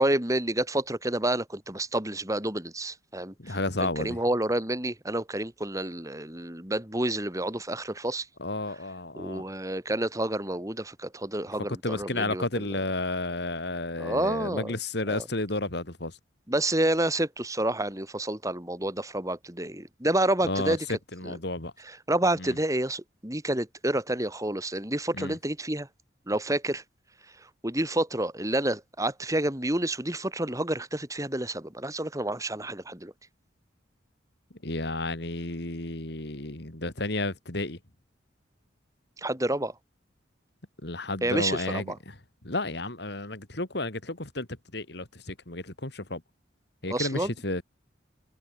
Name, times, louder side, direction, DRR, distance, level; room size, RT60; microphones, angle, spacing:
voice 1, 0.0-8.3 9.2-12.4 14.0-14.7 15.1-15.2 16.5-20.8 21.2-21.3 22.1-25.9 26.3-26.8 27.6-33.1 39.2-39.7 41.2-42.0 46.9-47.3, right 1 dB, 15° right, 3.2 m, -29 dB
voice 2, 3.4-4.2 8.4-9.4 11.8-16.2 20.4-21.7 22.4-22.6 25.1-25.4 34.6-37.8 40.8-42.2 42.4-44.5 44.7-46.2 46.8-47.6, left 2 dB, 60° left, 2.9 m, -32 dB
head